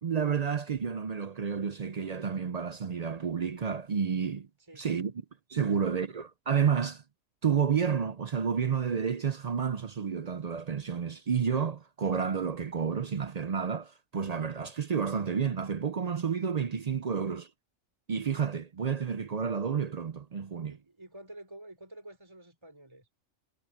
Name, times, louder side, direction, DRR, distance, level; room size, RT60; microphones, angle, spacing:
voice 1, 0.0-4.5 4.7-5.1 5.5-7.0 7.4-17.5 18.1-20.8, right 7 dB, 55° right, 0.4 m, -30 dB
voice 2, 4.6-5.1 5.6-5.9 20.7-23.1, right 1 dB, 20° right, 3.8 m, -50 dB
omnidirectional pair, 1.4 m